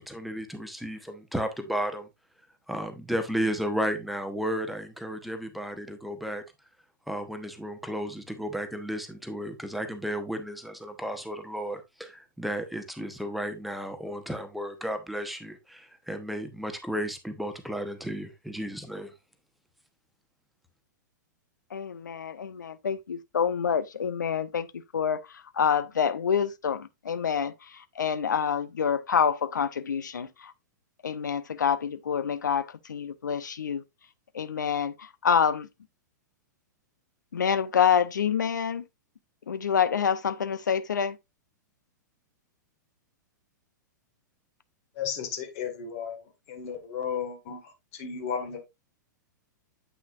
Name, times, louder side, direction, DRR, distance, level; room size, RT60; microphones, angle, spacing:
voice 1, 0.0-2.1 2.7-6.4 7.1-19.1, equal, ahead, 1.0 m, -33 dB
voice 2, 21.7-24.7 24.9-25.2 25.6-27.5 28.0-30.3 31.0-33.8 34.3-34.9 35.2-35.7 37.3-38.8 39.5-41.1, left 7 dB, 70° left, 0.7 m, -27 dB
voice 3, 45.0-46.2 46.5-48.6, left 7 dB, 45° left, 2.0 m, -34 dB
8.4 x 5.8 x 2.5 m
figure-of-eight pair, 105°, 10 cm